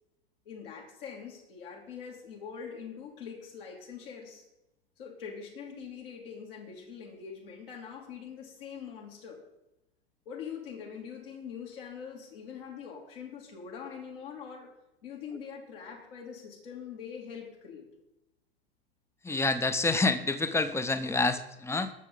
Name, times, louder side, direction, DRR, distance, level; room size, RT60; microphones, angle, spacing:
voice 1, 0.4-4.4 5.0-9.4 10.2-14.7 15.0-17.9, left 7 dB, 60° left, -1 dB, 2.9 m, -43 dB
voice 2, 19.2-21.9, left 3 dB, 10° left, 12 dB, 0.8 m, -28 dB
21.0 x 7.0 x 3.9 m, 0.92 s
figure-of-eight pair, 80°, 31 cm